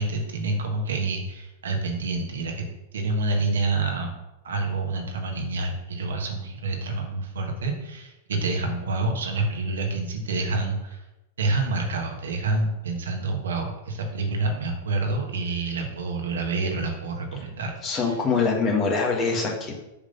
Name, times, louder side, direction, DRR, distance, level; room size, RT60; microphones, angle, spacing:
voice 1, 0.0-2.7 2.9-4.1 4.4-11.0 11.4-18.2, right 3 dB, 75° right, 2 dB, 1.5 m, -28 dB
voice 2, 17.8-19.8, left 4 dB, 30° left, 0 dB, 1.8 m, -24 dB
7.1 x 3.7 x 5.4 m, 0.97 s
hypercardioid pair, 100°, 0 cm